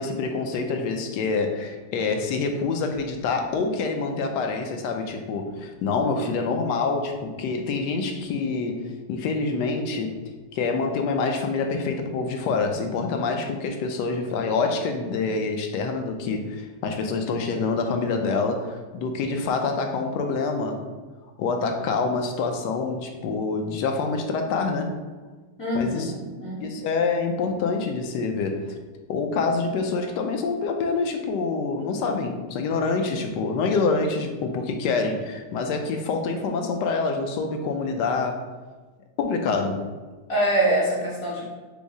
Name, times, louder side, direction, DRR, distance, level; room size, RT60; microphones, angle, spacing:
voice 1, 0.0-10.2 10.5-20.8 21.4-25.0 25.7-26.1 26.6-28.7 29.1-38.5 39.2-39.9, left 4 dB, 75° left, 4 dB, 1.1 m, -26 dB
voice 2, 25.6-26.7 40.3-41.4, right 1 dB, 50° left, -8 dB, 1.5 m, -24 dB
5.3 x 2.0 x 4.7 m, 1.3 s
omnidirectional pair, 2.0 m